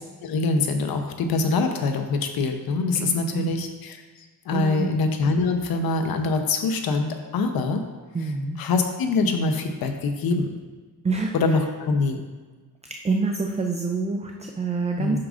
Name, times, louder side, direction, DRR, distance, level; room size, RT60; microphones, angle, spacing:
voice 1, 0.2-4.0 4.5-7.8 8.6-10.5 11.3-12.2 15.0-15.2, left 3 dB, 75° left, 6 dB, 0.9 m, -24 dB
voice 2, 2.9-3.5 4.5-4.9 8.1-8.6 11.0-11.3 13.0-15.2, right 4 dB, 20° right, 3 dB, 0.4 m, -26 dB
8.6 x 6.1 x 2.5 m, 1.4 s
cardioid pair, 100°, 37 cm